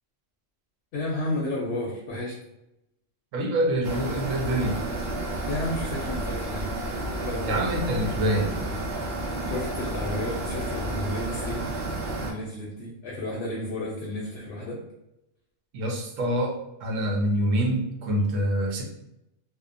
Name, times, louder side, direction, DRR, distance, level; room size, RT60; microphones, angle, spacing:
voice 1, 0.9-2.4 5.5-6.7 7.2-7.6 9.5-11.6 12.2-14.8, left 1 dB, 65° left, -3 dB, 0.8 m, -32 dB
voice 2, 3.3-4.8 7.5-8.8 15.7-18.8, right 1 dB, 85° right, 1 dB, 1.0 m, -26 dB
sound 1, 3.8-12.3, right 1 dB, 60° right, 0.7 m, -31 dB
2.7 x 2.0 x 2.5 m, 0.87 s
omnidirectional pair, 1.3 m